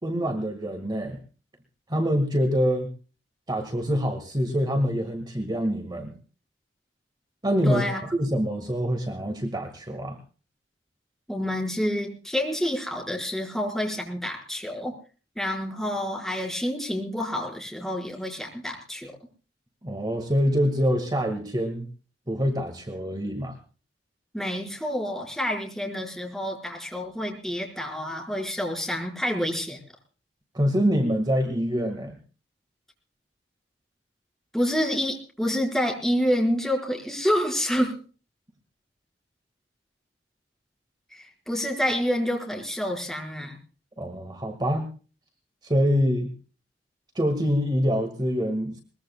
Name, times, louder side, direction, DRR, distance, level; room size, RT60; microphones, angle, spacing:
voice 1, 0.0-1.2 1.9-2.9 3.5-6.2 7.4-10.2 19.8-21.9 22.3-23.6 30.5-32.2 44.0-44.9 45.6-46.3 47.2-48.8, equal, 25° right, 6 dB, 1.8 m, -25 dB
voice 2, 7.6-8.0 11.3-15.0 15.4-19.1 24.3-29.8 34.5-38.0 41.1-43.6, equal, ahead, 1 dB, 4.7 m, -28 dB
22.0 x 21.5 x 2.3 m, 0.38 s
head